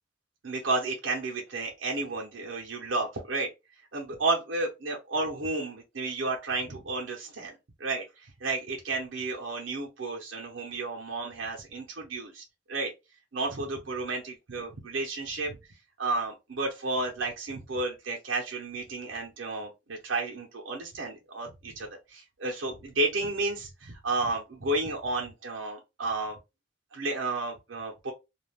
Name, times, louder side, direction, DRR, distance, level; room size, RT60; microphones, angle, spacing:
voice 1, 0.4-3.5 3.9-7.5 7.8-12.9 13.3-15.6 16.0-26.4 26.9-28.1, right 2 dB, 75° right, 0.7 m, -32 dB
2.4 x 2.2 x 3.3 m
head